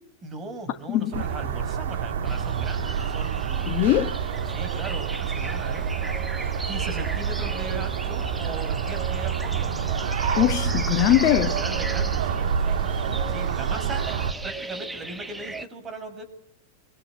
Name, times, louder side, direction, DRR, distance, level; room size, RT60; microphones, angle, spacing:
voice 1, 0.2-3.7 4.5-5.8 6.6-9.7 11.2-12.8 13.3-14.1 14.4-16.2, right 3 dB, 20° right, 8 dB, 6.0 m, -38 dB
voice 2, 0.9-1.2 3.7-4.2 10.4-11.6, left 14 dB, 40° left, 9 dB, 1.3 m, -21 dB
sound 1, 1.1-14.3, right 7 dB, 55° right, 3.0 m, -27 dB
sound 2, 2.2-15.7, right 2 dB, 5° right, 1.2 m, -37 dB
24.5 x 24.0 x 9.0 m, 0.85 s
figure-of-eight pair, 90°, 0 cm